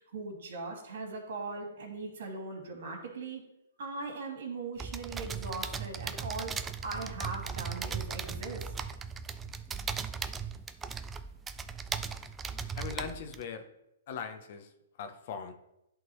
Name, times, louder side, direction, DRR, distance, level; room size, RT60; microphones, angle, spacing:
voice 1, 0.0-3.4 3.8-6.5 6.8-8.7, right 3 dB, 65° right, 2 dB, 2.3 m, -40 dB
sound 1, 4.8-13.4, right 6 dB, 15° right, 0.3 m, -38 dB
voice 2, 12.7-13.7 14.1-14.7 15.0-15.5, left 6 dB, 50° left, 9 dB, 0.9 m, -40 dB
11.0 x 3.8 x 3.2 m, 0.85 s
hypercardioid pair, 135°, 0 cm